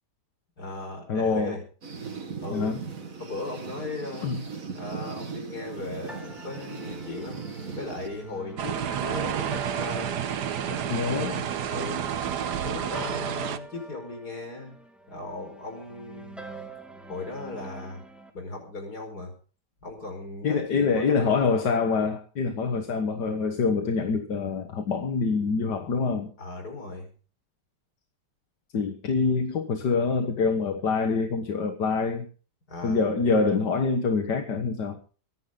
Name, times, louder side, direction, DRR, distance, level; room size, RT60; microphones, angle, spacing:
voice 1, 0.6-1.6 2.4-2.9 3.2-4.3 4.7-7.4 7.7-10.1 10.7-12.1 12.6-14.8 15.1-16.4 17.1-18.0 18.3-19.3 19.8-21.4 26.4-27.1 32.7-33.1, left 2 dB, 70° left, 4 dB, 5.6 m, -37 dB
voice 2, 1.1-1.6 2.5-2.8 4.2-4.4 10.9-11.3 20.4-26.3 28.7-32.3 32.8-35.0, left 4 dB, 85° left, 6 dB, 2.1 m, -25 dB
sound 1, 1.8-8.4, right 5 dB, 55° right, 2.5 m, -38 dB
sound 2, 6.1-18.3, right 1 dB, ahead, 2.3 m, -45 dB
sound 3, 8.6-13.6, right 9 dB, 80° right, 1.5 m, -30 dB
24.5 x 10.5 x 3.8 m, 0.38 s
omnidirectional pair, 1.8 m